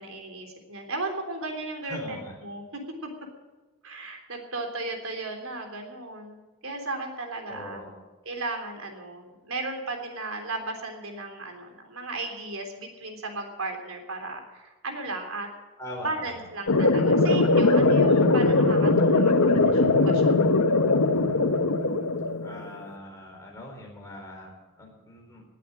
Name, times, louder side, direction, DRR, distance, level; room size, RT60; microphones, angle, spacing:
voice 1, 0.0-2.6 3.8-7.8 8.3-15.5 16.0-20.4, right 2 dB, 75° right, 4 dB, 3.5 m, -35 dB
voice 2, 1.9-2.3 7.5-8.0 15.8-16.5 22.4-25.4, left 1 dB, 15° left, -1 dB, 4.3 m, -41 dB
sound 1, 16.7-22.7, left 3 dB, 85° left, 1.2 m, -20 dB
19.5 x 8.4 x 7.7 m, 1.2 s
head